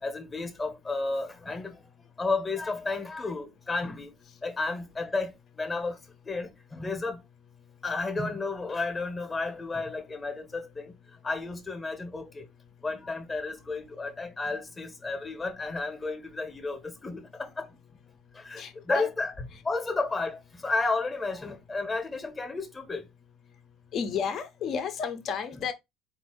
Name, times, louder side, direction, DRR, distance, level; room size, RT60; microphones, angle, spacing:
voice 1, 0.0-1.8 2.2-4.1 4.4-6.0 6.2-7.2 7.8-10.9 11.2-12.5 12.8-17.7 18.3-19.3 19.6-23.1, left 3 dB, 20° left, 1.1 m, -32 dB
voice 2, 18.6-19.1 23.9-25.7, left 5 dB, 45° left, 0.8 m, -31 dB
4.3 x 2.7 x 4.6 m
cardioid pair, 130°, 0 cm